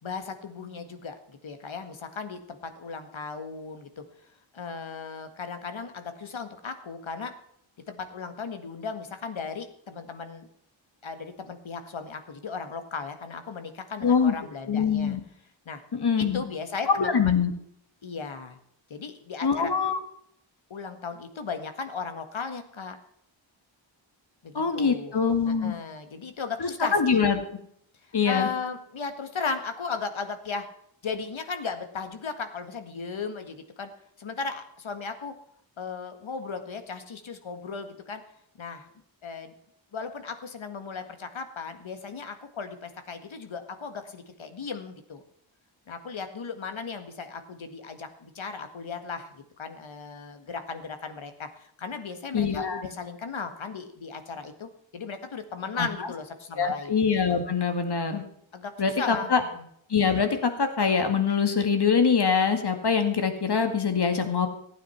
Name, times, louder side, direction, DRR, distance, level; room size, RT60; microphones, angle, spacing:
voice 1, 0.0-4.0 4.5-7.3 7.9-10.5 11.0-15.2 15.7-15.8 16.2-17.4 18.0-18.6 18.9-19.7 20.7-23.0 24.4-25.1 25.5-27.2 28.0-30.7 31.0-33.9 34.2-35.3 35.8-38.2 38.6-38.9 39.2-39.5 39.9-45.2 45.9-56.9 58.5-59.7, left 5 dB, 75° left, 8 dB, 1.8 m, -36 dB
voice 2, 14.0-14.3 14.7-15.2 15.9-16.4 16.9-17.5 19.4-20.0 24.5-25.7 26.9-27.4 28.1-28.5 52.3-52.9 55.8-55.9 56.6-58.2 58.8-59.4 59.9-64.5, left 6 dB, 55° left, 7 dB, 2.1 m, -24 dB
15.5 x 9.2 x 5.7 m, 0.68 s
wide cardioid pair, 125°, 48 cm